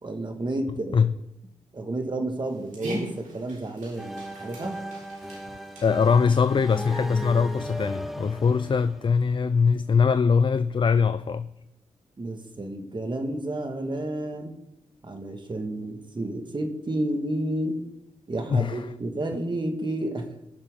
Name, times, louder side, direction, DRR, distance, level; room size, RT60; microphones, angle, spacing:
voice 1, 0.0-1.1 1.7-4.8 12.2-14.5 15.0-17.8 18.3-20.5, right 1 dB, 35° right, 1.7 m, -31 dB
Dog, 2.4-7.7, right 1 dB, 90° right, 3.6 m, -42 dB
sound 1, 4.0-9.7, right 1 dB, ahead, 0.7 m, -37 dB
voice 2, 5.8-11.5 18.5-18.9, left 5 dB, 40° left, 0.4 m, -22 dB
19.0 x 6.7 x 3.7 m
cardioid pair, 65°, 13 cm